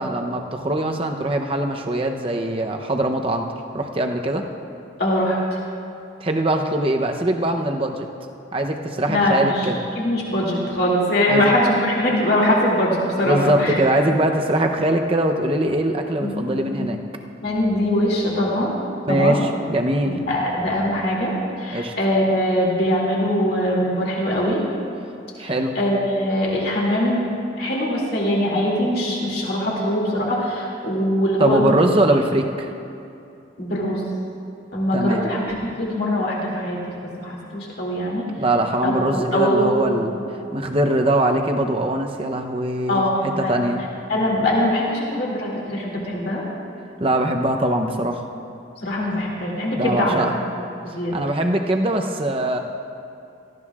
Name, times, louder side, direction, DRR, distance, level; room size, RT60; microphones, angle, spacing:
voice 1, 0.0-3.4 3.7-4.4 6.2-8.1 8.5-9.8 11.3-11.5 13.2-17.0 19.1-20.2 21.7-21.9 25.4-25.8 31.4-32.7 34.9-35.2 38.4-40.2 40.5-43.1 43.4-43.8 47.0-48.2 49.7-50.4 51.1-52.6, right 1 dB, 30° right, 3 dB, 0.7 m, -22 dB
voice 2, 5.0-5.4 9.1-9.7 9.9-13.8 16.2-16.9 17.4-18.7 19.1-19.4 20.0-21.3 21.6-24.6 25.4-27.2 27.6-31.6 33.6-34.0 34.7-36.8 37.2-38.2 38.8-40.2 42.9-43.6 44.1-46.4 48.8-50.2 50.8-51.1, left 1 dB, 55° left, -3 dB, 2.5 m, -22 dB
18.0 x 14.5 x 2.4 m, 2.6 s
head